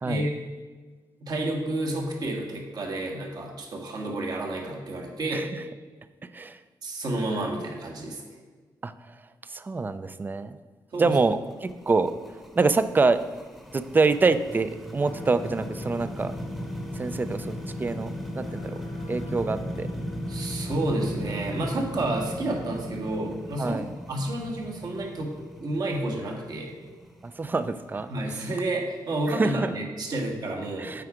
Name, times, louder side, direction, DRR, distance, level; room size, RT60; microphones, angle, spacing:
voice 1, 0.0-0.4 1.2-5.5 6.8-8.2 10.9-11.2 20.3-23.8 24.1-25.3 25.6-26.7 28.1-31.0, right 1 dB, 55° right, 0 dB, 1.5 m, -30 dB
voice 2, 5.3-5.6 6.3-6.6 8.8-9.1 9.5-10.6 11.0-13.2 13.7-16.3 16.9-17.5 17.8-18.8 19.1-19.9 23.6-23.8 27.2-28.1 29.3-29.7 30.8-31.0, right 3 dB, 25° right, 12 dB, 0.4 m, -26 dB
sound 1, 10.9-29.7, right 1 dB, ahead, 0.9 m, -38 dB
sound 2, 15.0-21.2, left 3 dB, 70° left, 0.8 m, -39 dB
7.9 x 4.8 x 4.9 m, 1.4 s
wide cardioid pair, 120°, 8 cm